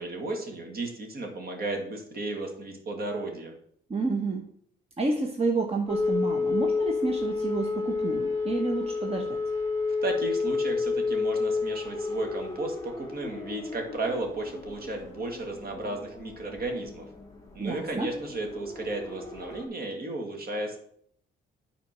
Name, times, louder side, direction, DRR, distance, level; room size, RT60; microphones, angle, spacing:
voice 1, 0.0-3.6 10.0-17.1 17.5-20.8, right 2 dB, 50° right, 3 dB, 2.2 m, -34 dB
voice 2, 3.9-4.4 5.0-9.4 17.6-18.1, right 3 dB, 30° right, 2 dB, 1.1 m, -29 dB
sound 1, 5.9-19.7, left 4 dB, 15° left, 2.4 m, -31 dB
9.4 x 4.3 x 6.1 m, 0.67 s
cardioid pair, 90°, 20 cm